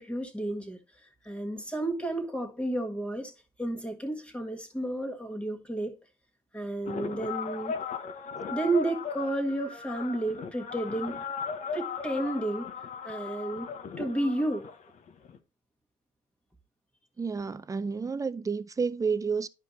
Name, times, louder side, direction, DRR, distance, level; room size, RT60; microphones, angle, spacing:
voice 1, 0.0-3.3 3.6-5.9 6.5-7.7 8.5-11.2 11.7-12.7 13.0-13.7 14.0-14.7, right 1 dB, 5° left, 1.7 m, -32 dB
sound 1, 6.9-15.4, left 6 dB, 45° left, 1.0 m, -37 dB
voice 2, 17.2-19.5, right 5 dB, 20° right, 0.5 m, -30 dB
11.5 x 5.0 x 2.7 m
cardioid pair, 110°, 17 cm